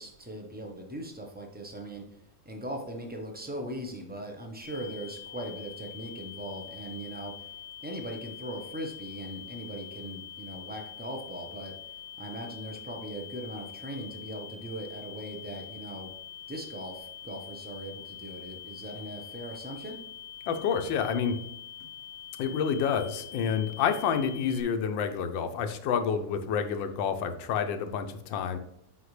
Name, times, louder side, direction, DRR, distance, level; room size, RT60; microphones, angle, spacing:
voice 1, 0.0-7.5 7.8-11.7 12.2-16.1 16.5-20.0, right 1 dB, 10° right, 2 dB, 0.4 m, -39 dB
sound 1, 4.6-24.6, left 10 dB, 20° left, 0.9 m, -45 dB
voice 2, 20.5-21.4 22.4-28.6, left 7 dB, 85° left, 8 dB, 1.4 m, -29 dB
8.0 x 5.1 x 3.2 m, 0.80 s
omnidirectional pair, 2.0 m